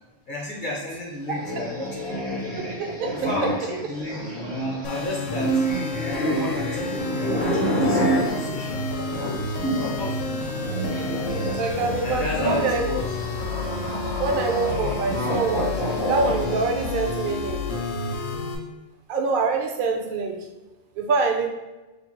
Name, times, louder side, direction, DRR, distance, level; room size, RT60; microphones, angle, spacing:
voice 1, 0.3-2.5 3.2-4.4 4.8-5.7 6.0-9.7 9.9-10.7 12.0-13.1, left 2 dB, 45° left, -3 dB, 0.8 m, -33 dB
sound 1, 1.3-10.0 10.3-17.1, right 1 dB, 75° right, 1.5 m, -28 dB
voice 2, 2.6-3.5 11.6-12.9 14.2-15.8 16.1-17.8 19.1-20.4 21.0-21.5, right 4 dB, 55° right, 3 dB, 0.6 m, -25 dB
sound 2, 4.8-18.6, left 3 dB, 80° left, 0.9 m, -30 dB
3.1 x 2.3 x 4.3 m, 1.1 s
omnidirectional pair, 1.3 m